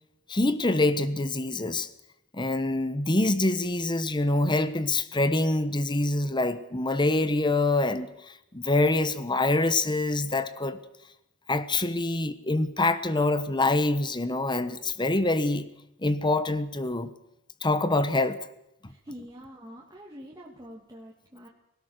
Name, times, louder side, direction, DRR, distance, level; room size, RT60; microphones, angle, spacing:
voice 1, 0.3-1.9 2.3-10.8 11.5-15.6 16.0-17.1 17.6-18.5, left 2 dB, 20° left, 1.2 m, -25 dB
voice 2, 18.9-21.5, equal, 15° right, 2.6 m, -45 dB
24.5 x 18.0 x 6.7 m
head